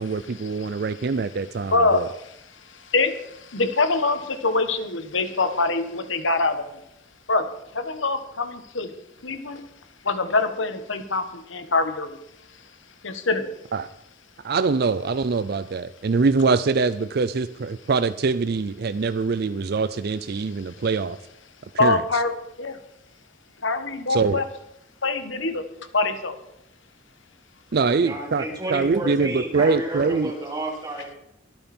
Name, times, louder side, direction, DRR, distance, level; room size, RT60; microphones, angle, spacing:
voice 1, 0.0-2.1 13.7-13.9 14.4-21.2 21.8-22.0 24.1-24.4 27.7-28.4 28.7-30.3, right 4 dB, 50° right, 12 dB, 0.4 m, -23 dB
voice 2, 1.7-2.3 2.7-6.8 7.3-7.4 7.7-8.9 9.2-9.6 10.0-12.2 13.0-13.5 21.8-22.3 22.6-22.8 23.6-24.4 25.0-25.6 25.9-26.3, left 3 dB, 70° left, 9 dB, 1.4 m, -24 dB
voice 3, 28.0-31.2, right 1 dB, 20° right, -3 dB, 4.1 m, -31 dB
24.0 x 9.0 x 4.4 m, 0.81 s
head